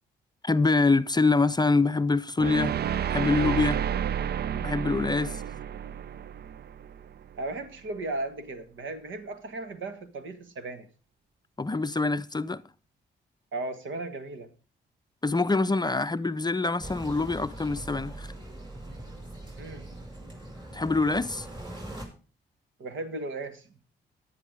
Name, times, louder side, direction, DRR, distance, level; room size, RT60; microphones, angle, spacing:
voice 1, 0.4-2.8 3.1-3.8 4.5-5.4 11.6-12.6 15.2-18.3 20.7-21.5, left 3 dB, 20° left, 0.6 m, -25 dB
sound 1, 2.4-7.5, right 9 dB, 50° right, 0.5 m, -31 dB
voice 2, 7.4-10.9 13.5-14.5 19.6-19.8 22.8-23.7, right 2 dB, 70° right, 1.7 m, -36 dB
sound 2, 16.8-22.1, right 1 dB, 20° right, 5.7 m, -41 dB
11.0 x 10.0 x 5.1 m
hypercardioid pair, 45°, 21 cm